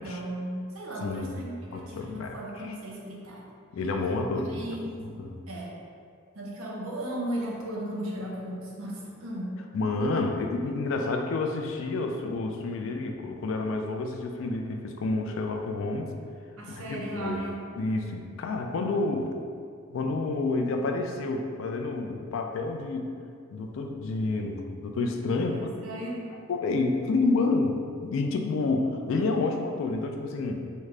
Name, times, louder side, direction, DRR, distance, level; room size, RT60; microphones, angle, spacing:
voice 1, 0.0-3.4 4.3-4.9 5.5-5.7 6.3-9.6 16.6-17.6 25.4-26.3, right 1 dB, 75° right, -3 dB, 0.7 m, -36 dB
voice 2, 1.0-1.4 1.7-2.4 2.6-2.7 3.7-5.4 9.7-16.1 16.7-17.5 17.8-19.3 19.9-23.1 23.5-25.7 26.5-30.7, left 3 dB, 65° left, 3 dB, 0.3 m, -29 dB
3.6 x 2.2 x 3.2 m, 2.3 s
head